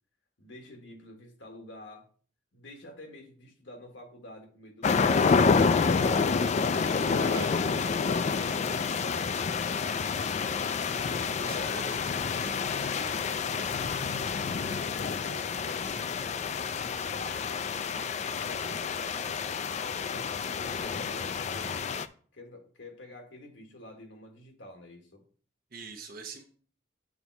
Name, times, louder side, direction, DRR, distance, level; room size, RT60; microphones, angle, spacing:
voice 1, 0.4-2.1 2.5-9.9 11.4-12.0 12.7-13.8 14.7-19.3 19.7-22.0 22.3-25.2, left 2 dB, 80° left, 3 dB, 1.5 m, -48 dB
sound 1, 4.8-22.1, left 5 dB, 40° left, 0.3 m, -28 dB
voice 2, 7.1-7.5 11.3-12.0 25.7-26.4, right 4 dB, 50° right, 2 dB, 1.0 m, -43 dB
7.1 x 4.1 x 4.6 m, 0.43 s
head